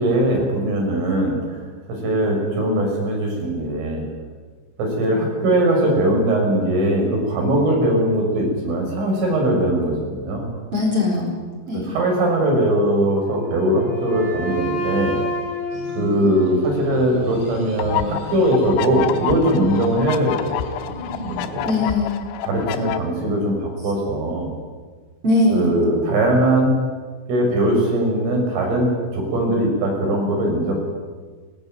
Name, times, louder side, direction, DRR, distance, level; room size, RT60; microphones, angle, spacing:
voice 1, 0.0-1.6 1.9-4.1 4.8-10.5 11.7-15.2 16.0-20.9 21.2-21.7 22.4-24.5 25.5-26.8 27.3-30.7, right 1 dB, 80° right, 0 dB, 8.5 m, -20 dB
voice 2, 10.7-11.3 11.7-11.9 21.6-22.2 25.2-25.8, left 2 dB, 30° right, -1 dB, 4.8 m, -20 dB
Wind instrument woodwind instrument, 13.2-17.2, left 1 dB, 55° right, 10.0 m, -29 dB
sound 1, 15.7-21.8, equal, 10° left, 5.9 m, -35 dB
sound 2, 17.8-23.0, left 12 dB, 85° left, 3.5 m, -28 dB
20.0 x 19.5 x 9.3 m, 1.5 s
omnidirectional pair, 5.7 m